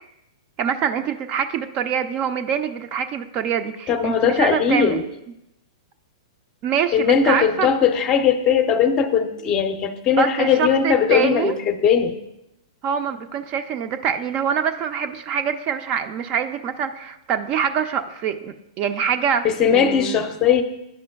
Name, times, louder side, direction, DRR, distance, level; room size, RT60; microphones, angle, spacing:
voice 1, 0.6-5.0 6.6-7.7 10.2-11.6 12.8-20.3, right 7 dB, 40° right, 8 dB, 0.4 m, -25 dB
voice 2, 3.9-5.0 6.9-12.1 19.4-20.6, left 7 dB, 30° left, 8 dB, 0.5 m, -19 dB
10.5 x 5.0 x 2.3 m, 0.88 s
hypercardioid pair, 115°, 3 cm